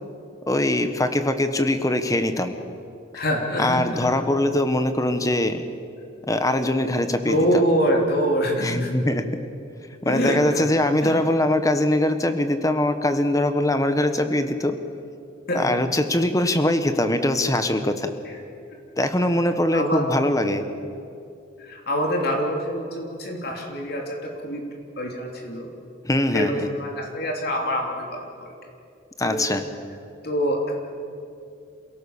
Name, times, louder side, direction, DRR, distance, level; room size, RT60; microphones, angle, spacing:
voice 1, 0.5-2.5 3.6-5.6 6.3-7.6 8.6-9.3 10.0-14.8 15.5-18.1 19.0-20.7 26.0-26.7 29.2-29.6, left 1 dB, 20° left, 8 dB, 1.3 m, -22 dB
voice 2, 3.1-4.1 7.3-8.9 10.0-10.7 11.0-11.2 15.5-15.7 19.7-20.1 21.6-24.7 25.0-25.7 26.3-28.5 29.2-29.4 30.2-30.8, equal, 55° left, 1 dB, 3.2 m, -25 dB
28.0 x 17.0 x 7.2 m, 2.6 s
head